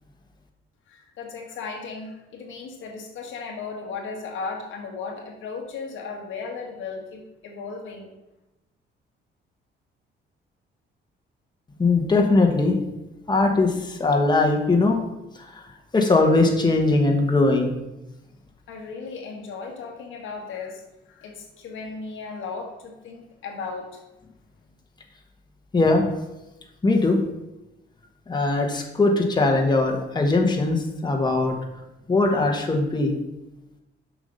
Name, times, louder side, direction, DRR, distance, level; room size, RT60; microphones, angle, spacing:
voice 1, 0.9-8.1 18.7-24.0, left 4 dB, 80° left, 1 dB, 1.6 m, -36 dB
voice 2, 11.8-12.8 13.3-15.0 15.3-15.6 15.9-17.7 25.7-26.1 26.8-27.2 28.3-31.6 32.1-33.2, left 3 dB, 20° left, 1 dB, 1.4 m, -20 dB
7.2 x 4.9 x 5.5 m, 0.94 s
cardioid pair, 90°, 20 cm